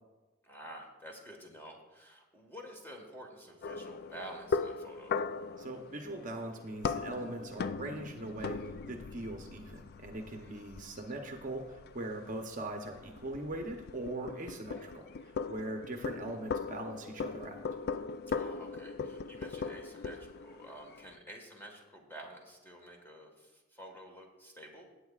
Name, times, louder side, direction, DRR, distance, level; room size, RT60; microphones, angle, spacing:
voice 1, 0.4-5.2 10.4-10.6 14.7-14.9 18.3-24.9, right 1 dB, 10° left, 1 dB, 1.5 m, -50 dB
sound 1, 3.6-21.2, left 5 dB, 50° left, 0.4 m, -39 dB
voice 2, 5.6-8.6 8.9-15.1 15.5-17.6, right 1 dB, 40° right, 4 dB, 0.8 m, -41 dB
17.5 x 8.1 x 2.4 m, 1.2 s
head